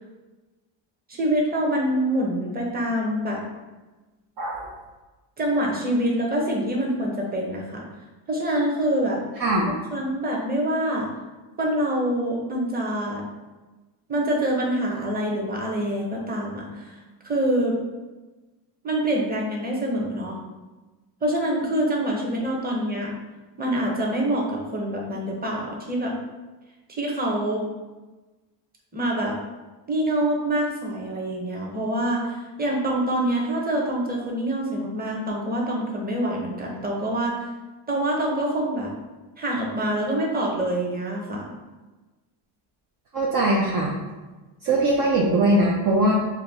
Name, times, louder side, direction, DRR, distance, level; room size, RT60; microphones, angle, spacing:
voice 1, 1.1-3.4 5.4-7.8 8.3-9.2 9.7-11.1 11.6-13.2 14.1-16.9 17.2-17.8 18.8-20.4 21.2-23.2 23.6-26.1 26.9-27.6 28.9-29.4 29.9-37.4 37.9-38.9 39.4-41.5, right 1 dB, 20° right, -2 dB, 1.0 m, -25 dB
voice 2, 4.4-4.7 9.4-9.7 43.1-43.9 44.6-46.1, right 1 dB, 45° right, -3 dB, 0.6 m, -21 dB
4.5 x 2.3 x 3.5 m, 1.2 s
cardioid pair, 105°, 48 cm